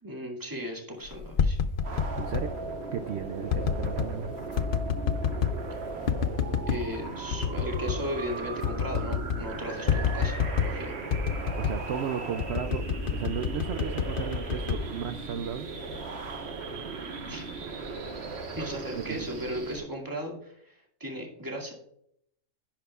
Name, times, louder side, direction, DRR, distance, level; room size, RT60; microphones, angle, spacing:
voice 1, 0.0-1.6 6.7-10.9 17.3-17.5 18.5-21.7, equal, 15° right, 0 dB, 2.2 m, -36 dB
sound 1, 1.1-2.5 3.5-4.1 4.6-5.6 6.1-6.8 7.3-8.0 8.3-8.4 8.6-9.5 9.9-10.8 11.1-11.8 12.4-15.5 15.9-16.3, left 7 dB, 75° left, 0.5 m, -28 dB
sound 2, 1.8-19.8, right 4 dB, 50° right, 1.4 m, -37 dB
voice 2, 2.2-2.5 2.9-4.3 11.6-15.7 19.0-19.3, right 8 dB, 70° right, 9 dB, 0.6 m, -35 dB
10.5 x 10.5 x 2.4 m, 0.71 s
omnidirectional pair, 1.6 m